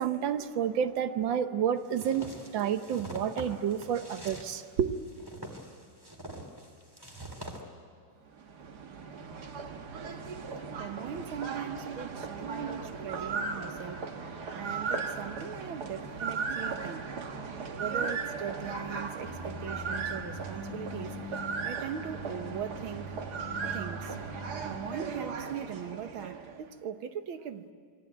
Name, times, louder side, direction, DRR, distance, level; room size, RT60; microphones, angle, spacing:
voice 1, 0.0-4.9, right 8 dB, 75° right, 1.8 m, -30 dB
sound 1, 1.9-7.6, right 1 dB, 10° right, 3.1 m, -44 dB
sound 2, 8.3-26.7, right 5 dB, 55° right, 1.9 m, -37 dB
voice 2, 10.8-14.1 14.5-17.2 17.7-21.4 21.6-23.2 23.7-24.2 24.6-27.7, right 8 dB, 90° right, 2.0 m, -40 dB
sound 3, 19.2-25.0, left 1 dB, 25° left, 1.9 m, -43 dB
27.5 x 22.5 x 9.2 m
omnidirectional pair, 2.2 m